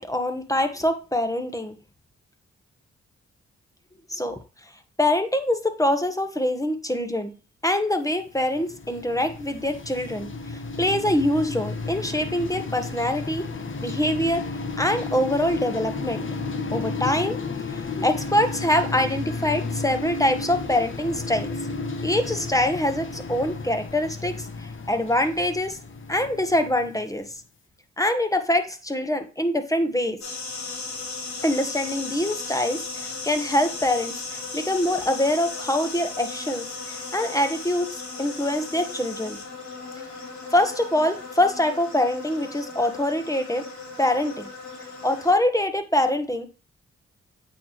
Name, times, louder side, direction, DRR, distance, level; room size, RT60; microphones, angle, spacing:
voice 1, 0.0-1.8 4.1-4.4 5.0-7.3 7.6-13.5 13.8-14.4 14.8-16.2 16.7-17.4 17.7-21.5 22.0-25.8 26.1-27.2 28.0-30.2 31.4-39.4 40.5-43.6 44.0-44.5 45.0-46.5, left 1 dB, 10° left, 7 dB, 1.3 m, -24 dB
sound 1, 8.3-27.3, left 3 dB, 45° left, 1.1 m, -33 dB
sound 2, 30.2-45.3, left 3 dB, 75° left, 2.7 m, -36 dB
8.4 x 4.2 x 3.1 m, 0.32 s
supercardioid pair, 45°, 29 cm